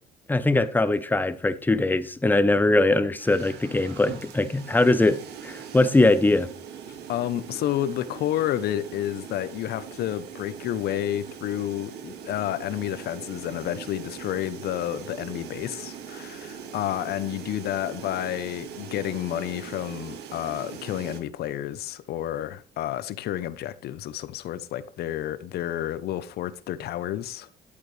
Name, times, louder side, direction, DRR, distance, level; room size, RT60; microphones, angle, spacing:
voice 1, 0.3-6.5, left 2 dB, 10° left, 0.8 m, -21 dB
sound 1, 3.2-21.2, right 8 dB, 80° right, 1.8 m, -41 dB
voice 2, 7.1-27.5, left 12 dB, 70° left, 0.9 m, -30 dB
10.5 x 8.5 x 3.3 m
cardioid pair, 110°, 17 cm